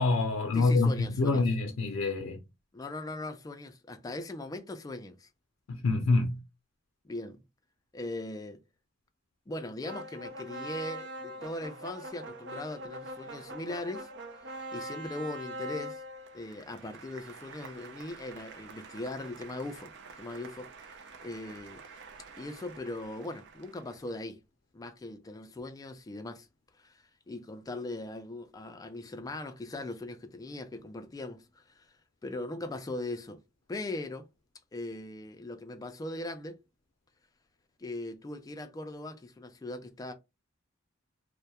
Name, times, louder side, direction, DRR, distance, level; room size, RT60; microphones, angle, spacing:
voice 1, 0.0-2.4 5.7-6.4, left 3 dB, 85° left, 0.4 m, -26 dB
voice 2, 0.5-1.5 2.7-5.3 7.0-7.4 7.9-8.6 9.5-16.0 16.3-21.8 22.4-24.4 24.7-26.5 26.8-27.0 27.3-31.9 32.2-33.4 33.7-34.2 34.7-36.6 37.8-40.1, left 2 dB, 20° left, 0.3 m, -40 dB
sound 1, 9.8-24.0, right 1 dB, 60° right, 0.5 m, -44 dB
2.2 x 2.1 x 2.8 m
head